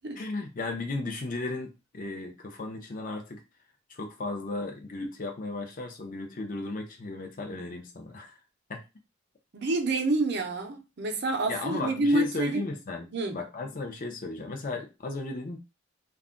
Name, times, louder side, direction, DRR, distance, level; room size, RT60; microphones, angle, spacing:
voice 1, 0.2-3.4 3.9-8.4 8.7-8.8 11.5-15.6, left 3 dB, 40° left, 0.6 m, -35 dB
voice 2, 9.5-12.6 13.1-13.4, right 2 dB, 55° right, 0.6 m, -28 dB
2.3 x 2.1 x 3.6 m
head